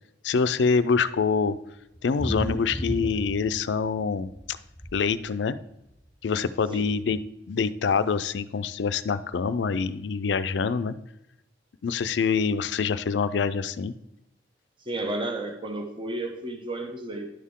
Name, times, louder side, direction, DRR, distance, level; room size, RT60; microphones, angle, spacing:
voice 1, 0.2-1.6 2.0-4.6 4.9-5.6 6.2-7.2 7.5-10.9 11.8-13.9, left 5 dB, 80° left, 13 dB, 0.4 m, -25 dB
sound 1, 1.9-3.9 4.2-4.9 5.9-6.0 6.4-6.5 6.7-6.8, equal, 15° right, 2.4 m, -32 dB
voice 2, 14.9-17.3, right 2 dB, 30° right, 4 dB, 0.9 m, -32 dB
10.5 x 6.5 x 3.6 m, 0.87 s
head